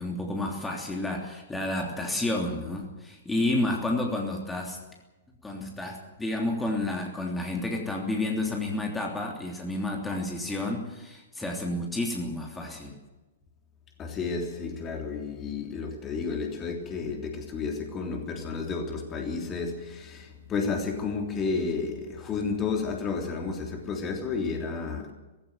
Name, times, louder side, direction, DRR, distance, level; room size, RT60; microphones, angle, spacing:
voice 1, 0.0-4.8 5.4-12.9, left 2 dB, 10° left, 0 dB, 3.1 m, -30 dB
voice 2, 14.0-25.1, left 4 dB, 25° left, 3 dB, 3.3 m, -31 dB
18.0 x 16.5 x 9.4 m, 1.1 s
figure-of-eight pair, 110°, 0 cm